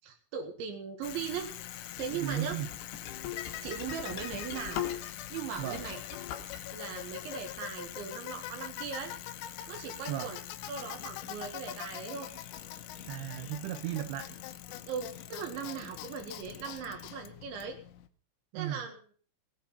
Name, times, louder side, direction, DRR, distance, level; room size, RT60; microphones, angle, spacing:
voice 1, 0.0-1.5 2.0-2.6 3.6-4.8 5.3-6.0 6.7-9.1 9.7-10.4 10.7-12.3 14.9-17.8 18.5-19.1, right 6 dB, 70° right, 5 dB, 3.9 m, -39 dB
Bicycle, 1.0-18.1, left 13 dB, 80° left, 3.3 m, -43 dB
sound 1, 2.0-5.3 5.6-6.6, left 10 dB, 65° left, 3.3 m, -40 dB
voice 2, 2.1-2.7 5.6-5.8 10.1-10.3 13.1-14.3 18.5-18.9, right 12 dB, 90° right, 10 dB, 2.3 m, -35 dB
sound 2, 10.8-17.2, left 6 dB, 40° left, 2.7 m, -55 dB
18.5 x 8.8 x 5.6 m, 0.42 s
omnidirectional pair, 5.8 m